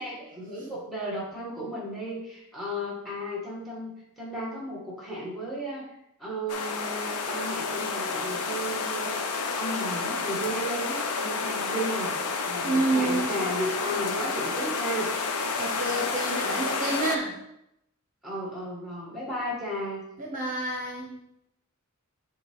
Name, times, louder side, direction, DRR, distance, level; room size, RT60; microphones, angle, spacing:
voice 1, 0.0-5.9 6.2-9.2 9.6-12.2 12.4-15.1 18.2-20.0, equal, ahead, -4 dB, 2.1 m, -34 dB
sound 1, 6.5-17.2, left 4 dB, 90° left, 0.7 m, -30 dB
voice 2, 12.6-13.3 15.6-17.4 19.5-19.6 20.2-21.2, right 2 dB, 35° right, -1 dB, 1.0 m, -29 dB
7.4 x 3.8 x 4.8 m, 0.83 s
head